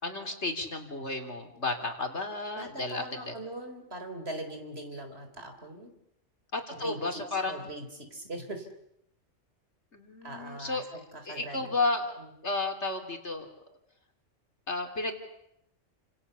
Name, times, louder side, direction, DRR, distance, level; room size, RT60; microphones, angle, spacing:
voice 1, 0.0-3.3 6.5-7.7 9.9-10.8 11.3-12.2 12.4-13.5 14.7-15.1, left 3 dB, 60° left, 4 dB, 3.7 m, -32 dB
voice 2, 2.5-5.9 6.8-8.7 10.2-11.8 12.2-12.3, right 1 dB, 50° right, 5 dB, 4.4 m, -41 dB
30.0 x 27.5 x 7.0 m, 0.77 s
omnidirectional pair, 1.3 m